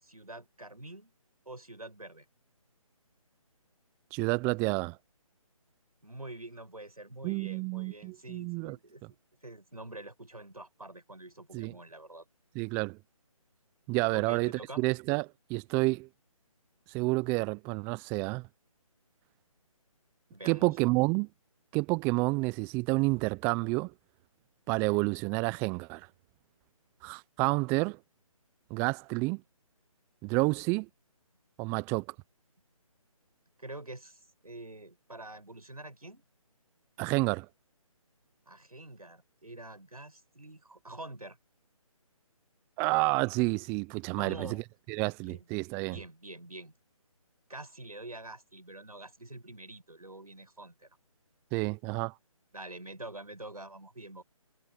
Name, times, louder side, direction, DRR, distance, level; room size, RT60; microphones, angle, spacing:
voice 1, 0.0-1.1 1.5-2.3 6.0-9.0 9.4-12.2 14.1-14.8 20.3-20.9 33.6-36.2 38.5-41.4 44.1-44.6 45.2-45.5 45.9-46.7 47.5-50.9 52.5-54.2, right 2 dB, 90° right, 7.1 m, -46 dB
voice 2, 4.1-5.0 7.2-8.8 11.5-11.7 12.5-13.0 13.9-16.1 16.9-18.5 20.4-21.3 21.7-23.9 24.7-26.1 27.0-28.0 28.7-29.4 30.2-30.9 31.6-32.1 37.0-37.5 42.8-44.6 44.9-46.0 51.5-52.1, right 26 dB, 10° right, 0.8 m, -29 dB
figure-of-eight pair, 150°, 19 cm